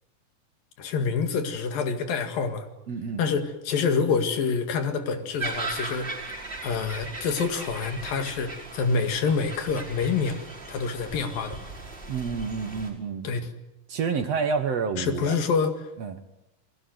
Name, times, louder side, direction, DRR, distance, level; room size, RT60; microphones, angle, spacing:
voice 1, 0.8-2.7 3.2-6.4 6.6-10.4 10.7-11.6 13.2-13.5 15.0-15.9, left 5 dB, 85° left, 7 dB, 3.8 m, -27 dB
voice 2, 2.9-3.2 12.1-13.3 13.9-15.4 16.0-16.2, right 5 dB, 55° right, 8 dB, 2.2 m, -29 dB
sound 1, 5.4-12.9, right 3 dB, 15° right, 5.6 m, -38 dB
29.0 x 20.5 x 7.9 m, 0.91 s
omnidirectional pair, 4.0 m